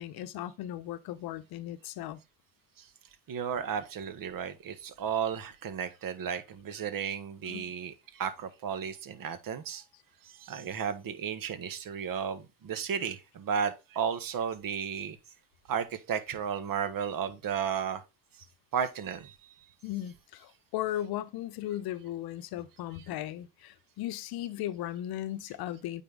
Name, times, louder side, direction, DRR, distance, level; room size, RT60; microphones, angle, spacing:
voice 1, 0.0-2.2 7.5-7.7 19.8-26.0, left 13 dB, 60° left, 0.8 m, -37 dB
voice 2, 3.3-9.8 10.2-15.2 15.7-18.0 18.4-18.5 18.7-19.5 19.9-20.0 22.9-23.1, right 7 dB, 50° right, 1.6 m, -34 dB
9.0 x 4.4 x 3.6 m
supercardioid pair, 75°, 42 cm